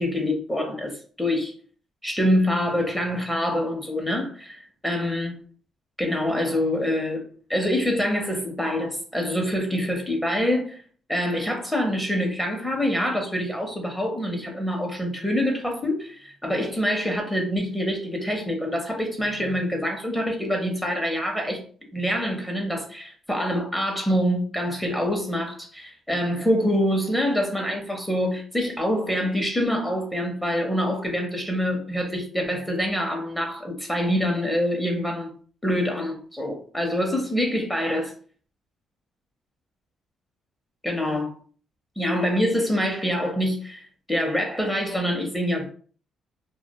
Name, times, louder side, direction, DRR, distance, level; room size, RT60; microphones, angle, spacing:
voice 1, 0.0-1.5 2.0-5.4 6.0-7.2 7.5-10.8 11.1-21.6 21.9-35.3 35.6-38.1 40.8-41.3 42.0-45.7, equal, 5° left, 0.6 m, -25 dB
2.3 x 2.1 x 2.8 m
cardioid pair, 90°, 0 cm